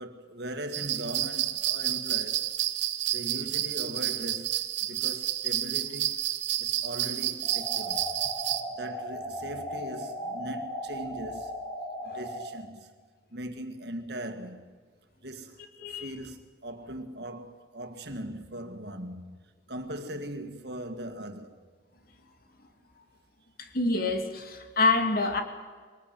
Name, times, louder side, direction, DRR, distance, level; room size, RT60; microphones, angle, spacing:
voice 1, 0.0-2.5 3.1-8.1 8.8-11.6 12.0-12.9 13.3-14.6 15.2-21.7, right 1 dB, 60° right, 2.1 m, -40 dB
sound 1, 0.7-8.6, right 13 dB, 75° right, 1.2 m, -30 dB
sound 2, 7.4-12.4, equal, 30° left, 4.2 m, -37 dB
voice 2, 23.6-25.4, left 3 dB, 50° left, 2.5 m, -26 dB
23.0 x 19.0 x 9.2 m
head